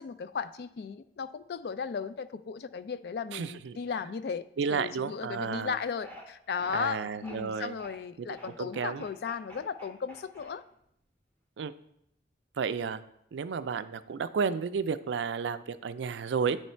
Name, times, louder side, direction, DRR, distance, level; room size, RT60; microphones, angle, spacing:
voice 1, 0.0-4.4 4.7-10.6, left 6 dB, 65° left, 13 dB, 0.3 m, -36 dB
voice 2, 3.3-3.8 4.6-5.7 6.7-7.8 8.2-8.3 8.6-9.0 11.6-11.7 12.6-13.0 13.3-16.6, right 6 dB, 90° right, 12 dB, 0.4 m, -32 dB
sound 1, 6.0-6.2 6.6-7.4 7.8-8.0 8.3-10.9, equal, 10° left, 0.8 m, -48 dB
9.2 x 3.2 x 4.3 m, 0.75 s
head